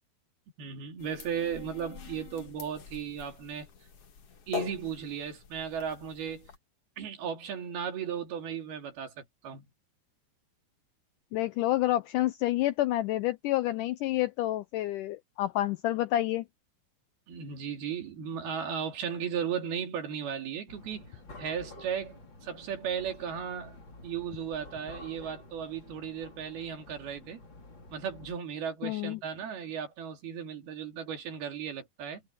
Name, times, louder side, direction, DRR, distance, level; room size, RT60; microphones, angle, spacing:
voice 1, 0.6-3.7 4.5-6.5 7.0-9.6 17.3-21.1 21.4-23.8 24.0-27.4 27.9-32.2, right 8 dB, 85° right, 4.6 m, -36 dB
sound 1, 1.0-6.6, left 6 dB, 45° left, 2.5 m, -43 dB
voice 2, 11.3-16.5 28.8-29.2, left 15 dB, 90° left, 1.9 m, -29 dB
sound 2, 20.7-28.4, left 2 dB, 30° left, 4.6 m, -50 dB
omnidirectional pair, 4.3 m